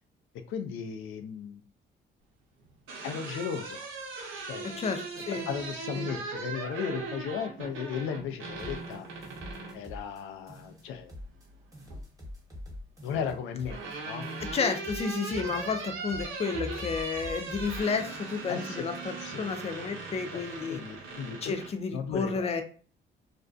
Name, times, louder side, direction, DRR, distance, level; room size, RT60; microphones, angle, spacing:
voice 1, 0.5-1.6 3.0-3.9 4.5-4.8 5.3-9.1 9.7-11.1 13.0-14.3 18.5-18.9 19.2-19.4 20.3-20.4 20.7-21.6 21.9-22.6, left 7 dB, 90° left, 7 dB, 0.4 m, -36 dB
sound 1, 2.6-9.8 11.3-12.0 13.2-21.7, right 3 dB, 80° right, 0.8 m, -39 dB
voice 2, 4.8-5.5 6.0-6.1 14.4-20.8 21.4-22.6, left 5 dB, 30° left, 6 dB, 0.4 m, -31 dB
sound 2, 8.6-10.2 10.5-11.5 11.7-15.2 15.5-16.5 16.7-18.6, left 1 dB, 15° right, 1.0 m, -45 dB
2.4 x 2.1 x 2.5 m, 0.40 s
cardioid pair, 90°, 20 cm